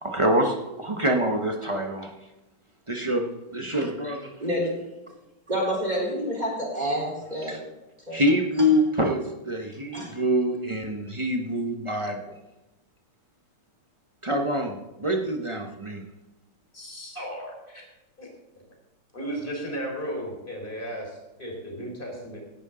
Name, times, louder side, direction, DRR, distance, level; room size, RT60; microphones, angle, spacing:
voice 1, 0.0-2.1 2.9-3.3 3.5-4.3 7.4-7.6 8.1-12.3 14.2-16.0, equal, 40° right, 2 dB, 0.4 m, -25 dB
voice 2, 4.4-4.7 5.5-7.6 8.1-8.2 8.6-8.7 9.9-10.1, equal, 20° right, -2 dB, 3.9 m, -28 dB
voice 3, 16.7-17.9 18.2-18.3 18.5-18.6 19.1-22.4, equal, 20° left, 0 dB, 4.1 m, -35 dB
17.5 x 11.0 x 3.8 m, 0.99 s
omnidirectional pair, 2.4 m